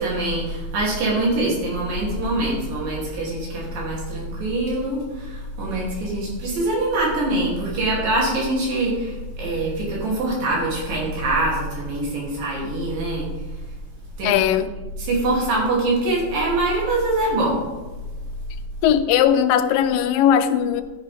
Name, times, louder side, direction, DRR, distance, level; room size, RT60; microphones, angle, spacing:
voice 1, 0.0-13.3 14.2-14.3 15.0-17.6, right 2 dB, 85° right, -4 dB, 4.8 m, -24 dB
voice 2, 14.2-14.7 18.8-20.8, left 9 dB, 90° left, 11 dB, 2.4 m, -18 dB
13.0 x 10.0 x 3.6 m, 1.2 s
omnidirectional pair, 3.9 m